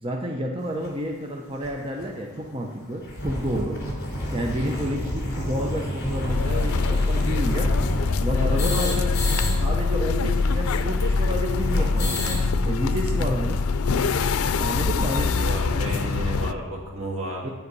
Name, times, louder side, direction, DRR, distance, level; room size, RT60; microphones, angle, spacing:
voice 1, 0.0-3.8 4.3-7.7 8.2-9.1 9.6-12.3 12.6-13.6 14.6-15.3 17.4-17.5, equal, 25° right, 0 dB, 0.8 m, -30 dB
sound 1, 0.8-0.9 1.6-1.7 2.0-2.1 2.4-2.5 2.8-9.5 9.8-9.9 10.1-12.5, left 1 dB, 50° left, 3.2 m, -30 dB
sound 2, 6.3-16.5, left 4 dB, 80° left, 0.5 m, -23 dB
voice 2, 15.0-17.5, right 1 dB, 70° right, -1 dB, 2.0 m, -33 dB
9.7 x 9.5 x 5.4 m, 1.3 s
head